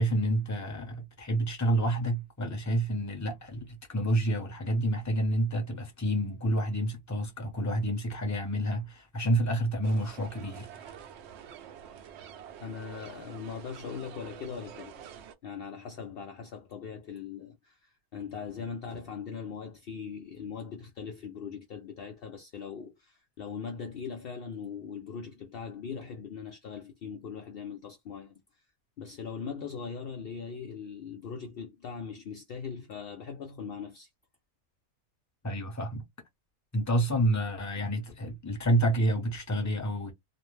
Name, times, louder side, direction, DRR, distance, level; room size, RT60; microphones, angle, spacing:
voice 1, 0.0-10.9 35.4-36.0 36.7-40.1, right 1 dB, 15° left, 0.6 m, -29 dB
sound 1, 9.8-15.4, right 8 dB, 65° right, 0.7 m, -47 dB
voice 2, 12.6-15.0 15.4-28.3 29.0-34.1, left 6 dB, 75° left, 0.5 m, -40 dB
2.4 x 2.1 x 3.1 m
omnidirectional pair, 1.5 m